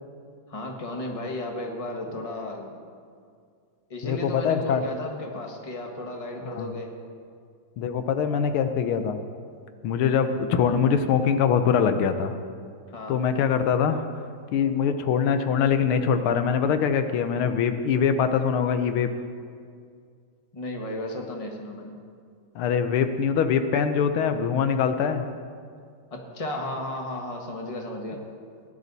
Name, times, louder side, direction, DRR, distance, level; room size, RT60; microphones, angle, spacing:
voice 1, 0.5-2.7 3.9-6.9 12.9-13.2 20.5-22.0 26.1-28.2, left 1 dB, 20° left, 1 dB, 1.1 m, -34 dB
voice 2, 4.0-4.8 6.4-6.7 7.8-9.2 9.8-12.3 13.1-14.0 14.5-19.1 22.5-25.2, left 7 dB, 90° left, 9 dB, 1.7 m, -23 dB
17.5 x 10.5 x 4.1 m, 2.2 s
omnidirectional pair, 2.3 m